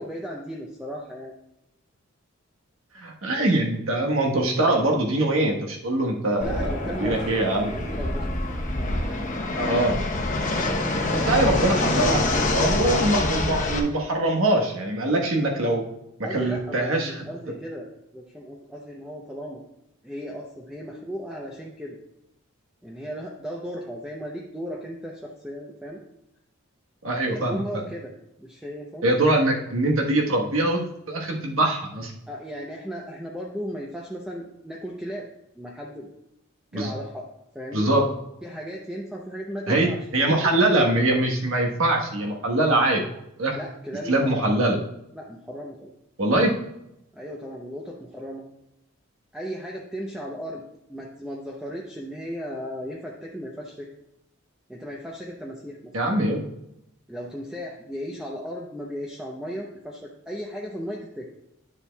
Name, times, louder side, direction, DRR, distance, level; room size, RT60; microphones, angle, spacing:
voice 1, 0.0-1.3 6.4-7.3 7.7-8.3 8.8-9.0 16.2-17.9 18.1-19.6 20.0-22.0 22.8-26.0 27.2-29.1 32.3-35.3 35.6-36.1 36.7-37.3 37.5-37.9 38.4-40.0 40.4-40.5 43.5-44.7 45.1-45.9 47.1-48.5 49.3-50.6 50.9-53.9 54.7-55.9 57.1-61.3, equal, 5° right, -2 dB, 0.6 m, -36 dB
voice 2, 2.9-6.6 6.9-7.7 9.5-10.0 11.1-15.8 16.3-17.2 27.0-27.6 29.0-30.8 31.1-32.1 36.7-36.9 37.7-38.2 39.7-43.0 43.4-43.6 44.1-44.8 46.2-46.5 55.9-56.4, right 1 dB, 70° right, 0 dB, 1.3 m, -23 dB
Fixed-wing aircraft airplane, 6.4-13.8, left 2 dB, 35° left, 0.9 m, -25 dB
10.0 x 7.1 x 2.3 m, 0.85 s
head